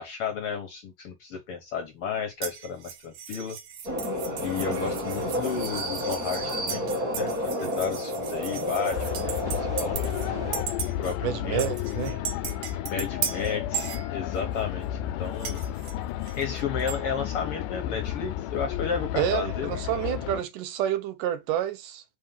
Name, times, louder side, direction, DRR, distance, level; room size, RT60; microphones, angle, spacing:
voice 1, 0.0-3.6 4.4-6.8 7.1-10.0 10.8-11.7 12.9-15.6 16.4-19.7, left 6 dB, 60° left, 1.6 m, -33 dB
sound 1, 2.4-10.3 10.5-11.2 11.6-14.6 15.4-17.0, right 8 dB, 65° right, 2.0 m, -37 dB
sound 2, 3.9-10.6, equal, 25° right, 3.7 m, -30 dB
sound 3, 8.9-20.4, left 12 dB, 80° left, 2.1 m, -32 dB
voice 2, 11.2-12.3 19.2-22.0, right 11 dB, 80° right, 2.5 m, -29 dB
6.5 x 4.2 x 5.6 m
omnidirectional pair, 3.7 m